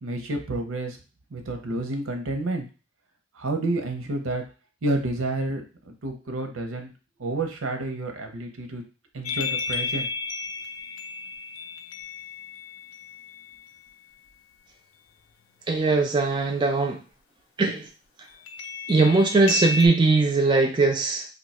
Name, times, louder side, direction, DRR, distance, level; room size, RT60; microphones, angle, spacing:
voice 1, 0.0-1.0 1.3-2.7 3.3-4.4 4.8-6.9 7.2-8.8 9.1-10.1, right 2 dB, 85° right, 4 dB, 0.7 m, -29 dB
sound 1, 9.2-13.8 18.5-19.9, left 4 dB, 85° left, 0.4 m, -33 dB
voice 2, 15.7-17.0 17.6-17.9 18.9-21.3, right 3 dB, 20° right, 2 dB, 0.3 m, -20 dB
2.6 x 2.2 x 4.1 m, 0.34 s
head